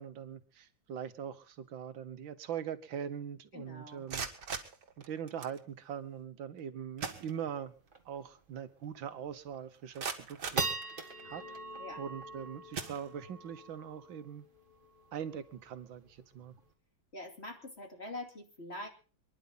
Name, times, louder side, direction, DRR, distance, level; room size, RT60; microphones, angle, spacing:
voice 1, 0.0-4.3 5.0-7.7 8.1-10.7 11.2-11.4 12.0-14.5 15.1-16.6, right 8 dB, 85° right, 11 dB, 1.9 m, -42 dB
voice 2, 3.5-4.1 11.8-12.0 17.1-18.9, left 2 dB, 35° left, 3 dB, 2.9 m, -44 dB
sound 1, 3.9-5.6 6.6-6.7 7.0-7.9 8.2-8.3 8.9-9.0 9.5-11.4 12.1-12.3 12.7-13.6, right 6 dB, 60° right, 2.3 m, -42 dB
sound 2, 7.4-7.5 7.9-8.2 8.6-8.7 9.3-9.6 10.1-16.7, right 3 dB, 30° right, 1.9 m, -42 dB
27.0 x 11.0 x 4.0 m, 0.38 s
omnidirectional pair, 2.0 m